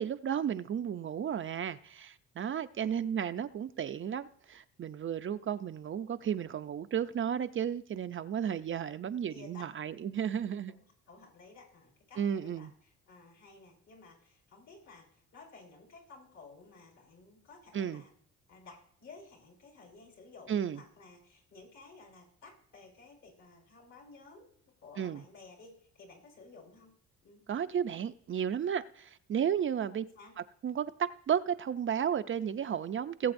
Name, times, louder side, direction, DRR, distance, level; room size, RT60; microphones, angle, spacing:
voice 1, 0.0-10.7 12.2-12.7 17.7-18.0 20.5-20.8 25.0-25.2 27.5-30.0 30.4-33.3, right 8 dB, 40° right, 0.5 m, -33 dB
voice 2, 9.3-9.7 10.7-12.7 13.1-18.1 18.5-24.4 24.8-26.9 27.2-27.4 29.7-30.3, left 3 dB, 70° left, 5.5 m, -54 dB
19.0 x 7.8 x 2.6 m
cardioid pair, 90°, 30 cm